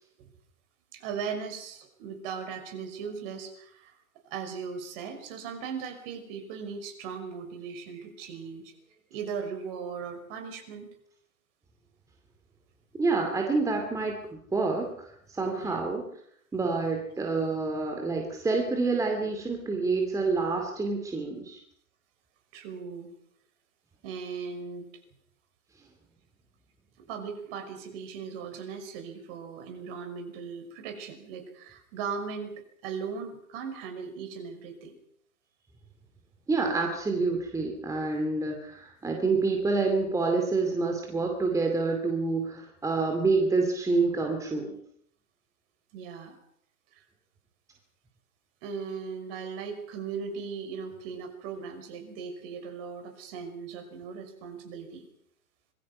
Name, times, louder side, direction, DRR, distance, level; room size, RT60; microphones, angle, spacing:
voice 1, 0.9-3.9 4.3-8.7 9.1-10.9 15.6-15.8 22.5-23.1 24.0-24.9 27.1-34.9 45.9-46.4 46.9-47.0 48.6-55.1, right 6 dB, 40° right, 6 dB, 5.7 m, -38 dB
voice 2, 13.0-16.0 16.5-21.6 36.5-44.8, right 3 dB, 5° right, 2 dB, 2.5 m, -28 dB
26.0 x 21.5 x 5.5 m, 0.68 s
hypercardioid pair, 130°, 45 cm